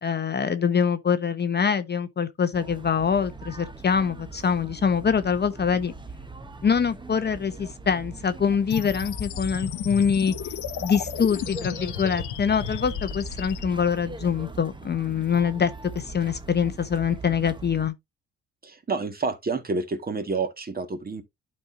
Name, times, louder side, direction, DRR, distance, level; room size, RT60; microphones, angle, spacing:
voice 1, 0.0-5.9 6.6-10.3 10.8-15.7 15.9-17.9, left 6 dB, 35° left, 0.9 m, -24 dB
sound 1, 2.5-17.9, right 4 dB, 15° right, 1.0 m, -41 dB
sound 2, 8.7-13.7, left 11 dB, 75° left, 0.9 m, -34 dB
voice 2, 18.6-21.2, right 4 dB, 30° right, 1.8 m, -29 dB
12.0 x 4.4 x 2.6 m
cardioid pair, 90°, 30 cm